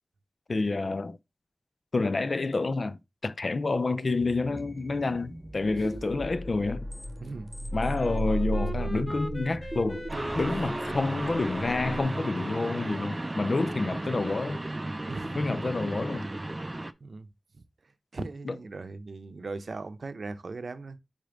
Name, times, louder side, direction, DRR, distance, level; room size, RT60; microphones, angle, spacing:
voice 1, 0.5-1.2 1.9-6.9 7.7-10.1 10.3-14.6 15.3-16.3 18.4-18.6, left 3 dB, 65° left, 0.5 m, -29 dB
sound 1, 4.2-12.0, right 1 dB, 10° right, 1.5 m, -36 dB
Wind instrument woodwind instrument, 7.7-12.4, equal, 15° left, 0.7 m, -41 dB
sound 2, 10.1-16.9, right 1 dB, 30° right, 0.5 m, -34 dB
voice 2, 15.1-15.4 17.0-17.3 17.5-17.6 18.1-21.0, right 3 dB, 90° right, 0.6 m, -39 dB
5.3 x 5.2 x 3.7 m
wide cardioid pair, 70°, 0 cm